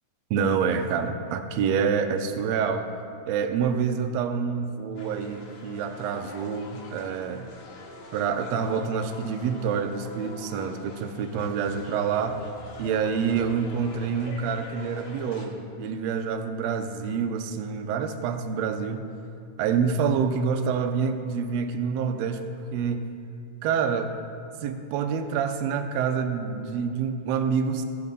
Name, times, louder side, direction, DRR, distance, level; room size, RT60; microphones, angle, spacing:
voice 1, 0.3-2.9 3.3-7.5 8.1-12.4 12.8-19.1 19.6-23.1 23.6-24.1 24.6-27.8, right 6 dB, 75° right, 8 dB, 1.7 m, -27 dB
sound 1, 5.0-15.5, left 3 dB, 90° left, 3.1 m, -44 dB
15.5 x 5.9 x 5.3 m, 2.5 s
omnidirectional pair, 3.4 m